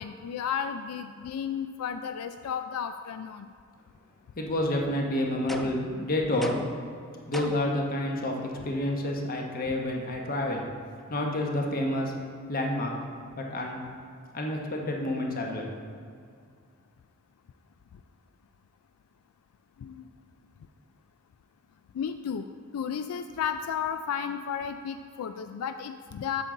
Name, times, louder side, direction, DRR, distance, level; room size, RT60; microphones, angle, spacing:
voice 1, 0.0-3.5 19.8-20.0 21.9-22.4 22.7-26.4, left 7 dB, 85° left, 9 dB, 0.3 m, -33 dB
voice 2, 4.4-6.6 7.3-10.6 11.1-12.1 12.5-12.9 13.4-13.8 14.3-15.7, left 1 dB, 40° left, 1 dB, 1.0 m, -29 dB
sound 1, 5.5-5.9 6.4-6.8 7.3-7.8, equal, ahead, 0.3 m, -38 dB
8.2 x 6.8 x 3.8 m, 2.2 s
head